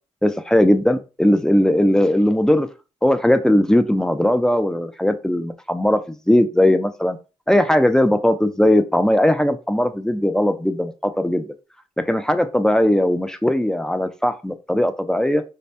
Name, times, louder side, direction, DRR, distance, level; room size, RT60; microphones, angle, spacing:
voice 1, 0.2-2.7 3.0-7.2 7.5-11.5 12.0-15.4, left 1 dB, 5° left, 9 dB, 0.5 m, -18 dB
4.0 x 2.8 x 3.3 m, 0.32 s
cardioid pair, 75°, 13 cm